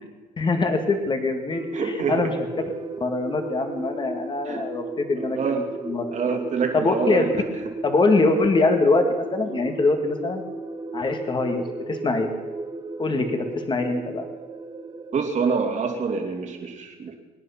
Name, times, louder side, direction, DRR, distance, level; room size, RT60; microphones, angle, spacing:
voice 1, 0.4-2.3 3.0-6.4 6.7-7.3 7.8-10.4 10.9-12.3 13.0-14.3, left 3 dB, 30° left, 5 dB, 2.0 m, -23 dB
sound 1, 1.5-15.2, right 2 dB, 25° right, 1.2 m, -35 dB
voice 2, 1.7-2.3 4.5-4.6 5.2-5.6 6.1-7.2 15.1-17.2, right 5 dB, 45° right, 3 dB, 2.8 m, -26 dB
23.5 x 9.9 x 5.9 m, 1.3 s
cardioid pair, 110°, 17 cm